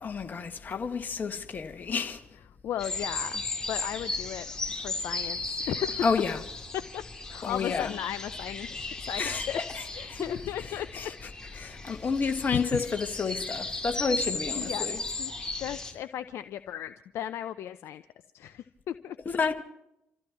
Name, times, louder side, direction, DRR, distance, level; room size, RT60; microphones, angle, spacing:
voice 1, 0.0-2.2 6.0-6.4 7.4-8.0 9.2-10.3 10.7-11.1 11.6-15.0 19.3-19.5, left 5 dB, 40° left, 1.7 m, -30 dB
voice 2, 2.6-4.5 4.7-5.4 5.7-6.1 6.7-7.0 7.3-9.6 9.9-10.9 12.2-12.6 14.5-18.0 18.3-19.2, left 10 dB, 60° left, 0.6 m, -36 dB
sound 1, 2.8-15.9, left 2 dB, 15° left, 3.6 m, -36 dB
28.5 x 15.0 x 3.0 m
hypercardioid pair, 50°, 5 cm